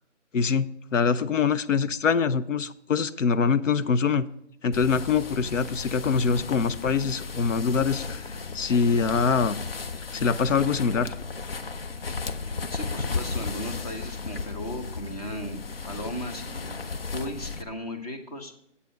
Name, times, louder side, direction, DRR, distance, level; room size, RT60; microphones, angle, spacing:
voice 1, 0.3-4.2 4.6-9.6 10.1-11.1, left 5 dB, 85° left, 14 dB, 0.7 m, -24 dB
sound 1, 4.7-17.6, left 4 dB, 50° left, 0.7 m, -35 dB
voice 2, 12.7-16.8 17.1-18.5, equal, 30° left, 6 dB, 1.2 m, -36 dB
8.3 x 8.2 x 5.2 m, 0.73 s
hypercardioid pair, 170°, 37 cm